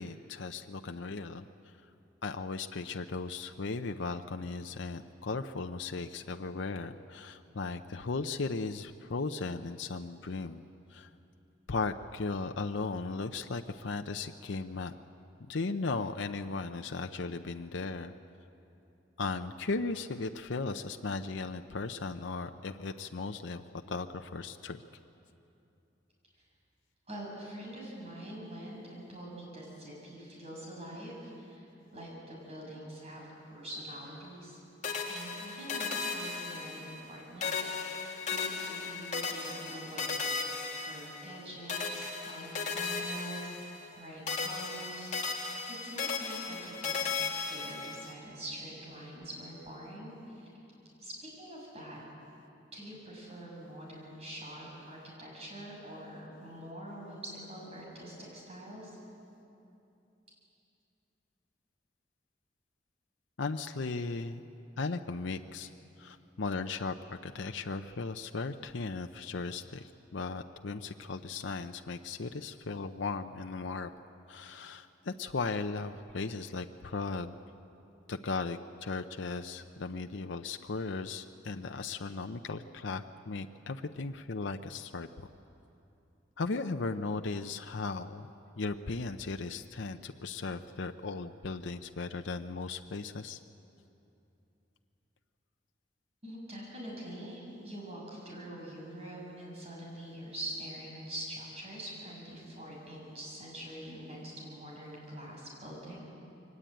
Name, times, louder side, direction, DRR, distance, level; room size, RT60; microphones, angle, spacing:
voice 1, 0.0-1.5 2.2-10.6 10.9-11.1 11.7-14.9 15.5-18.1 19.2-24.8 63.4-64.4 64.8-65.7 66.0-73.9 74.3-77.4 78.1-85.3 86.4-88.3 88.6-93.4, left 3 dB, 80° left, 6 dB, 0.7 m, -37 dB
voice 2, 27.1-31.7 31.9-34.6 35.1-40.2 40.8-43.5 43.9-47.1 47.5-50.5 51.0-52.0 52.7-58.9 96.2-106.0, right 1 dB, 35° right, -3 dB, 7.5 m, -45 dB
sound 1, 34.8-37.1 37.4-41.4 41.7-44.0 44.3-48.1, left 5 dB, 40° left, 2.5 m, -36 dB
23.0 x 19.5 x 9.0 m, 2.8 s
head